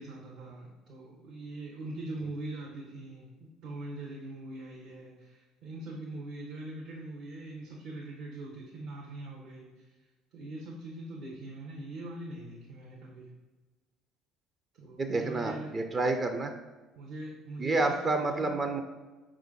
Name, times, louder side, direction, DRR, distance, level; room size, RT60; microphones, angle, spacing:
voice 1, 0.0-9.9 10.3-13.3 14.7-15.7 16.9-18.6, right 2 dB, 65° right, -3 dB, 0.8 m, -42 dB
voice 2, 15.0-16.5 17.6-18.8, right 2 dB, 35° right, 6 dB, 0.4 m, -29 dB
5.0 x 2.4 x 3.7 m, 1.2 s
hypercardioid pair, 60°, 0 cm